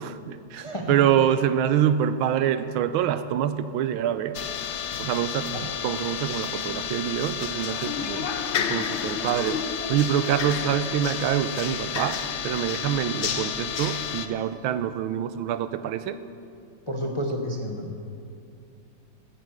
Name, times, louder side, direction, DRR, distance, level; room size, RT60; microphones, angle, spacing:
voice 1, 0.0-4.4 5.0-8.3 8.7-9.6 9.9-16.2, right 10 dB, 85° right, 12 dB, 1.4 m, -26 dB
voice 2, 0.6-1.0 5.4-5.9 16.9-17.9, equal, 25° left, 2 dB, 0.7 m, -31 dB
sound 1, 4.3-14.3, left 8 dB, 85° left, 0.6 m, -30 dB
17.0 x 8.5 x 6.6 m, 2.4 s
omnidirectional pair, 2.2 m